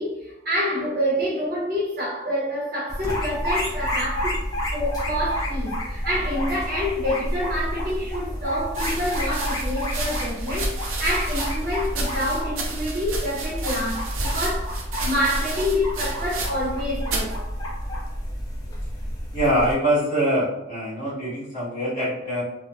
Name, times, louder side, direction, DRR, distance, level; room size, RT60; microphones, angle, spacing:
voice 1, 0.0-4.4 4.7-17.9, equal, 45° right, -7 dB, 0.7 m, -27 dB
sound 1, 2.9-19.7, equal, 15° left, 0.4 m, -29 dB
sound 2, 8.7-16.8 17.0-17.4 18.1-18.5, right 2 dB, 80° right, 0.5 m, -31 dB
voice 2, 19.3-22.4, equal, 35° left, -11 dB, 1.4 m, -23 dB
2.7 x 2.1 x 2.4 m, 0.89 s
head